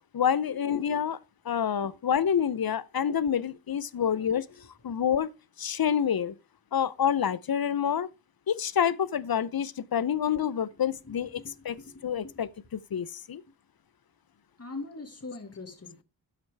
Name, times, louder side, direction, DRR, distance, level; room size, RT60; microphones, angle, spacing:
voice 1, 0.1-1.2 1.5-4.5 4.8-5.3 5.6-6.4 6.7-8.1 8.5-11.8 12.0-13.4, left 8 dB, 60° left, 0.6 m, -27 dB
voice 2, 11.4-12.4 14.6-16.0, left 3 dB, 35° left, 1.9 m, -43 dB
12.5 x 5.9 x 3.3 m
wide cardioid pair, 90°, 42 cm